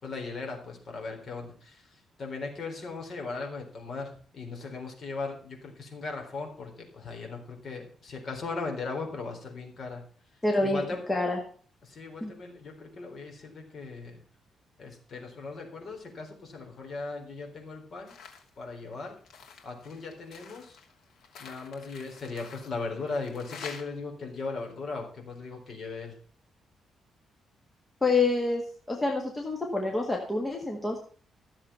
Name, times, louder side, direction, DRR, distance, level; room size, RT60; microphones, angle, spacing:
voice 1, 0.0-1.9 2.2-10.0 10.6-11.0 11.8-14.2 14.8-18.2 18.6-19.2 19.6-20.8 21.4-26.2, left 3 dB, 45° left, 2 dB, 4.0 m, -38 dB
voice 2, 10.4-10.8 11.1-11.4 12.2-12.3 28.0-28.6 28.9-31.0, left 3 dB, 15° left, 1 dB, 1.8 m, -27 dB
sound 1, 18.1-18.5 18.8-23.8, left 6 dB, 75° left, 2.7 m, -47 dB
14.0 x 7.4 x 5.7 m, 0.44 s
cardioid pair, 145°, 0 cm